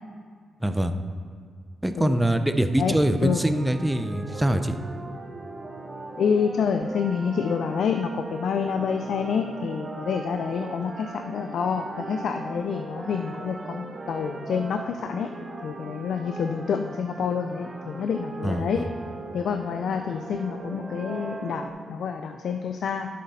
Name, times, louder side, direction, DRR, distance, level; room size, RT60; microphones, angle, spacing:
voice 1, 0.6-0.9 1.8-4.7 18.4-18.9, right 1 dB, 10° right, 8 dB, 0.7 m, -24 dB
sound 1, 3.2-21.7, right 3 dB, 35° right, 1.1 m, -39 dB
voice 2, 6.2-15.3 15.6-18.9 19.3-23.1, left 6 dB, 70° left, 6 dB, 0.5 m, -28 dB
10.5 x 7.5 x 4.2 m, 2.1 s
cardioid pair, 65°, 0 cm